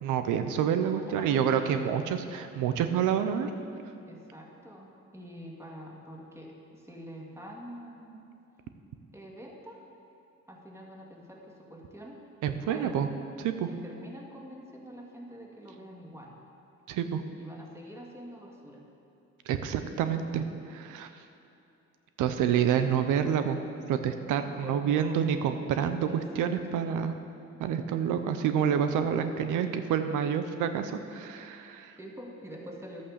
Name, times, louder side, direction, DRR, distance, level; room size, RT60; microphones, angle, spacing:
voice 1, 0.0-3.5 12.4-13.1 13.4-13.7 16.9-17.2 19.5-21.1 22.2-23.6 23.9-27.2 27.6-32.0, right 8 dB, 90° right, 8 dB, 0.7 m, -28 dB
voice 2, 0.7-2.0 4.1-8.3 9.1-9.8 10.5-12.2 12.4-13.0 13.7-16.4 17.4-18.8 24.4-25.3 26.1-26.5 29.1-29.4 32.0-33.0, equal, 10° right, -1 dB, 2.2 m, -45 dB
11.5 x 8.6 x 6.7 m, 2.7 s
cardioid pair, 90°, 30 cm